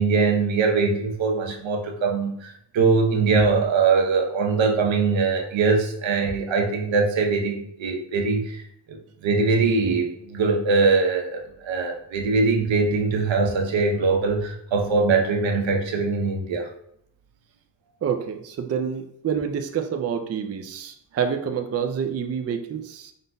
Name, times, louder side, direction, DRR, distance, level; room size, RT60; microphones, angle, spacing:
voice 1, 0.0-8.6 8.9-16.7, right 4 dB, 85° right, 2 dB, 0.8 m, -22 dB
voice 2, 18.0-23.1, right 7 dB, 35° right, 6 dB, 0.4 m, -27 dB
5.3 x 3.8 x 2.2 m, 0.72 s
wide cardioid pair, 125°, 45 cm